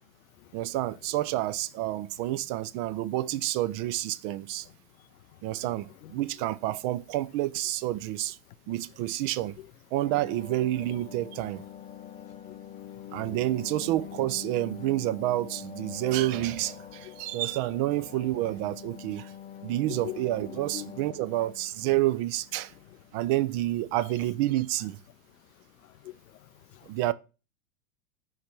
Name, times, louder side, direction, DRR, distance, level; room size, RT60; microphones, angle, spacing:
voice 1, 0.5-4.7 5.4-8.4 8.7-9.5 9.9-11.6 13.1-19.3 19.6-22.7 23.1-25.0 26.8-27.1, right 15 dB, 40° right, 0.5 m, -29 dB
sound 1, 10.0-23.1 23.4-23.5, left 9 dB, 15° left, 0.6 m, -45 dB
voice 2, 19.9-20.2 20.5-20.9 25.8-26.9, left 16 dB, 75° left, 0.5 m, -43 dB
5.7 x 5.4 x 3.1 m
hypercardioid pair, 95°, 42 cm